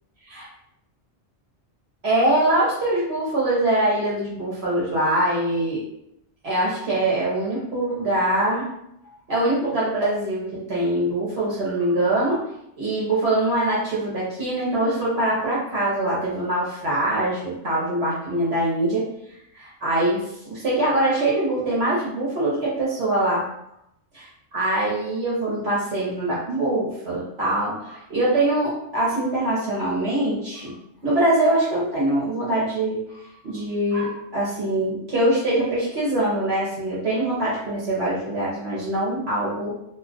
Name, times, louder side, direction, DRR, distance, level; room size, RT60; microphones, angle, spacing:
voice 1, 2.0-5.8 6.4-8.7 9.3-12.4 12.8-19.1 19.5-23.5 24.1-30.7 31.0-39.7, right 1 dB, 65° right, -8 dB, 1.0 m, -23 dB
2.4 x 2.3 x 3.6 m, 0.78 s
omnidirectional pair, 1.2 m